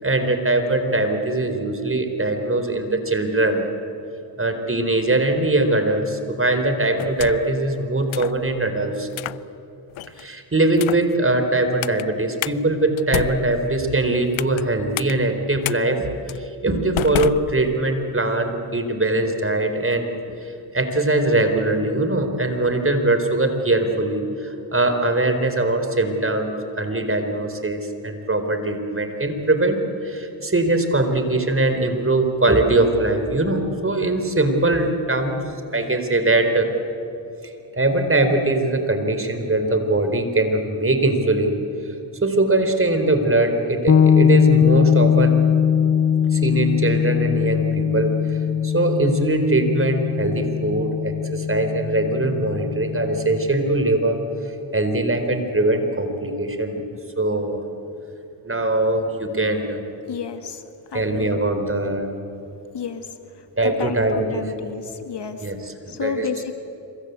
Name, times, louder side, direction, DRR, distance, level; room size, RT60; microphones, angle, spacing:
voice 1, 0.0-3.7 4.4-9.1 10.2-16.0 16.3-20.0 20.4-35.4 35.7-36.7 37.4-41.6 42.2-45.4 46.3-48.4 48.6-54.2 54.7-56.8 57.2-57.6 58.4-59.8 60.9-62.1 63.6-64.4 65.4-66.3, right 2 dB, 25° right, 7 dB, 4.2 m, -21 dB
sound 1, 7.0-7.6 8.1-8.4 9.1-9.4 10.0-10.3 10.7-11.1 11.8-12.0 12.4-12.6 13.0-14.6 15.0-15.1 15.6-15.8 16.3-16.4 17.0-18.0, left 15 dB, 80° left, 0.7 m, -29 dB
sound 2, 43.9-53.5, left 8 dB, 30° left, 1.1 m, -20 dB
voice 2, 60.1-60.6 60.9-61.4 62.7-63.1 63.6-65.4 65.9-66.5, left 7 dB, 60° left, 7 dB, 2.1 m, -30 dB
27.0 x 23.5 x 8.3 m, 2.9 s
cardioid pair, 55°, 47 cm